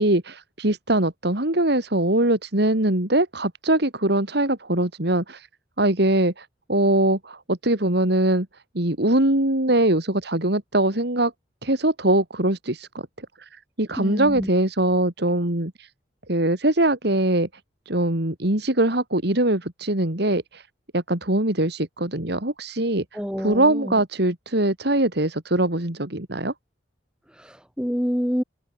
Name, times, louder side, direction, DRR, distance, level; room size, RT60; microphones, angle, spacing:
voice 1, 0.0-5.5 5.8-8.5 8.7-11.3 11.6-12.9 13.4-15.9 16.3-17.5 17.9-20.7 20.9-23.0 23.4-26.5, right 1 dB, 60° right, 3.0 m, -22 dB
voice 2, 14.0-14.5 23.1-24.0 27.4-28.4, equal, 5° right, 5.5 m, -27 dB
head